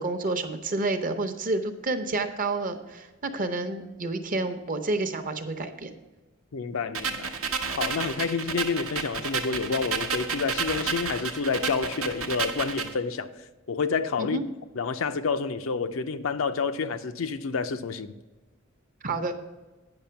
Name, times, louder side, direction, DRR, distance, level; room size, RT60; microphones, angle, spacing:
voice 1, 0.0-5.9 14.2-14.4 19.0-19.3, right 2 dB, 40° right, 0.8 m, -29 dB
voice 2, 6.5-7.3 7.8-13.3 13.7-14.4 14.8-18.1, left 5 dB, 75° left, 0.5 m, -29 dB
sound 1, 6.9-12.9, right 5 dB, 85° right, 0.9 m, -31 dB
8.8 x 5.9 x 5.7 m
head